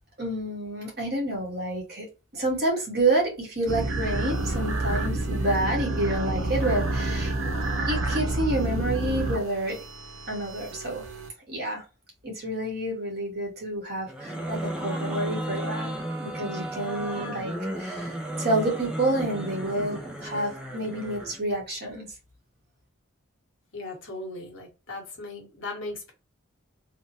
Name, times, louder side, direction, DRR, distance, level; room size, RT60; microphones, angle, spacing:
voice 1, 0.2-2.1 2.3-7.3 7.9-9.8 10.3-11.1 11.5-11.8 12.2-15.9 16.2-22.1, right 1 dB, 50° right, 1.4 m, -29 dB
sound 1, 3.7-11.3, right 2 dB, 80° right, 0.6 m, -29 dB
sound 2, 14.1-21.4, right 1 dB, 5° right, 0.5 m, -34 dB
voice 2, 23.7-26.1, left 2 dB, 65° left, 1.1 m, -37 dB
3.3 x 2.1 x 2.7 m
head